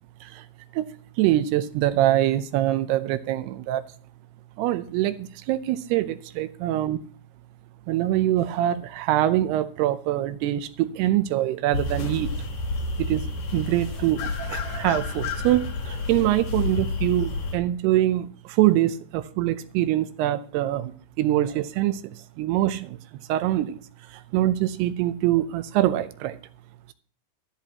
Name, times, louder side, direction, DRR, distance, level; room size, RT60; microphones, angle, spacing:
voice 1, 1.2-3.8 4.6-7.0 7.9-12.3 13.0-13.2 13.5-20.9 21.2-23.0 23.3-23.8 24.3-26.4, right 14 dB, 80° right, 2.6 m, -24 dB
sound 1, 11.7-17.6, left 3 dB, 60° left, 4.0 m, -30 dB
13.5 x 12.5 x 2.8 m
omnidirectional pair, 4.9 m